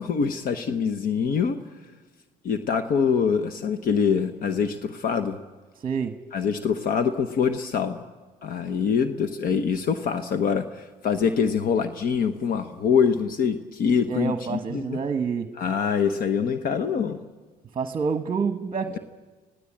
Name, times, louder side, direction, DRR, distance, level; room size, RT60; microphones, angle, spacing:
voice 1, 0.0-1.6 2.4-5.4 6.3-8.0 8.4-15.0 15.6-17.2, left 6 dB, 60° left, 9 dB, 1.0 m, -24 dB
voice 2, 5.8-6.1 14.1-15.5 17.7-19.0, right 5 dB, 30° right, 8 dB, 1.2 m, -27 dB
26.0 x 17.0 x 8.7 m, 1.3 s
cardioid pair, 110°, 17 cm